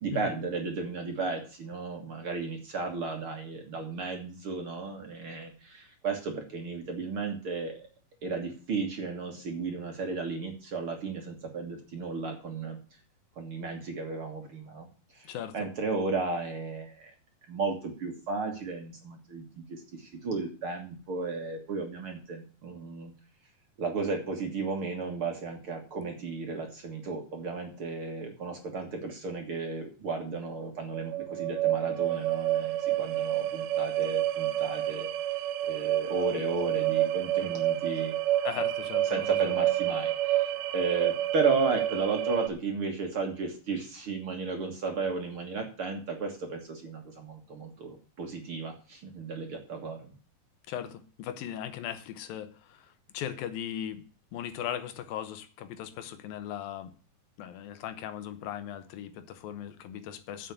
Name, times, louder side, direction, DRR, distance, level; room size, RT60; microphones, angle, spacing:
voice 1, 0.0-7.9 8.2-12.8 13.4-14.9 15.1-17.1 17.5-23.1 23.8-35.1 35.6-38.1 39.1-50.1, right 4 dB, 45° right, 3 dB, 2.1 m, -34 dB
voice 2, 15.2-15.6 38.4-39.6 50.7-54.0 54.3-56.9 57.4-60.5, left 10 dB, 80° left, 11 dB, 2.8 m, -38 dB
sound 1, 30.9-42.5, right 13 dB, 75° right, 2.3 m, -29 dB
7.7 x 7.5 x 8.2 m, 0.37 s
omnidirectional pair, 4.1 m